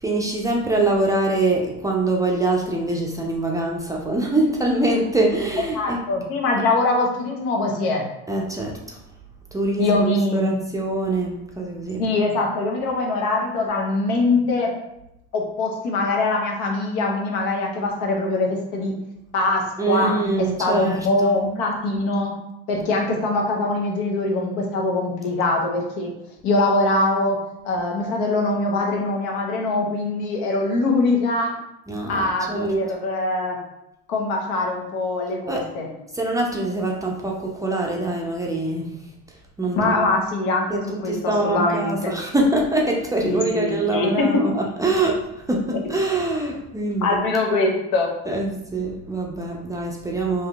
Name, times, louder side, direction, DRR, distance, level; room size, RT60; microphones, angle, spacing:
voice 1, 0.0-6.0 8.3-9.0 9.5-12.0 19.8-21.0 31.9-32.7 35.5-35.7 36.1-38.9 39.6-40.1 40.7-47.2 48.3-50.5, right 2 dB, 10° right, -1 dB, 0.5 m, -24 dB
voice 2, 5.7-8.0 9.8-10.5 12.0-14.7 15.3-18.9 19.3-22.3 22.7-26.1 26.4-27.4 27.6-31.5 32.1-33.6 34.1-35.9 39.7-42.1 43.2-44.3 47.0-48.1, left 2 dB, 70° left, 1 dB, 0.9 m, -23 dB
3.5 x 2.7 x 2.3 m, 0.85 s
supercardioid pair, 85°, 32 cm